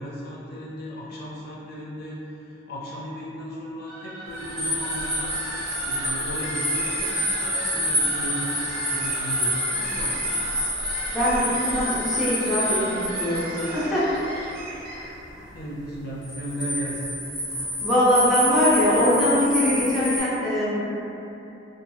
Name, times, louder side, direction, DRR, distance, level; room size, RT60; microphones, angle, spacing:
voice 1, 0.0-5.3 5.8-8.5 8.9-10.2 15.5-17.1, equal, 55° left, -6 dB, 0.5 m, -35 dB
sound 1, 3.9-15.2, right 1 dB, 50° right, 0.4 m, -35 dB
sound 2, 4.4-13.7 16.2-20.2, equal, 35° right, 1.4 m, -28 dB
voice 2, 10.8-14.1 15.3-15.5 17.5-20.7, left 1 dB, 5° right, -11 dB, 0.6 m, -22 dB
2.9 x 2.3 x 2.6 m, 2.9 s
head